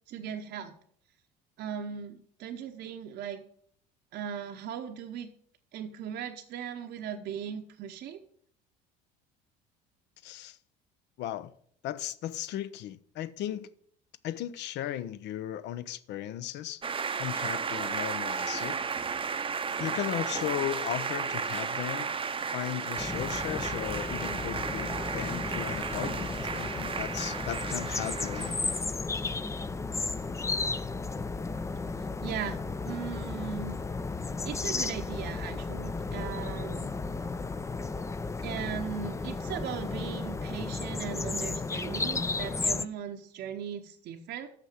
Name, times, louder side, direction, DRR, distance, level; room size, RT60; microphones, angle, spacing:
voice 1, 0.1-0.7 1.6-3.4 4.1-5.3 5.7-8.2 32.0-32.6 32.8-33.7 34.4-36.9 38.4-44.5, right 8 dB, 55° right, 0.9 m, -38 dB
voice 2, 10.2-10.6 11.2-11.5 11.8-13.7 14.2-16.8 17.2-18.8 19.8-22.1 22.5-28.6, left 12 dB, 60° left, 0.7 m, -36 dB
sound 1, 16.8-28.9, right 6 dB, 25° right, 0.7 m, -34 dB
sound 2, 23.0-42.9, left 3 dB, 15° left, 0.5 m, -34 dB
6.6 x 5.9 x 7.4 m
hypercardioid pair, 75°, 21 cm